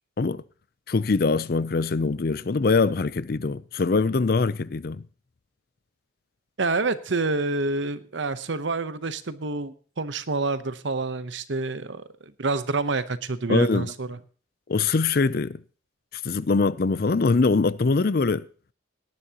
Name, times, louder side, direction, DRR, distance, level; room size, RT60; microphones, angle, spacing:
voice 1, 0.9-5.0 13.5-13.9 14.7-15.6 16.2-18.4, left 4 dB, 50° left, 0.5 m, -23 dB
voice 2, 6.6-14.2, right 3 dB, 70° right, 0.9 m, -28 dB
18.0 x 11.0 x 2.9 m
head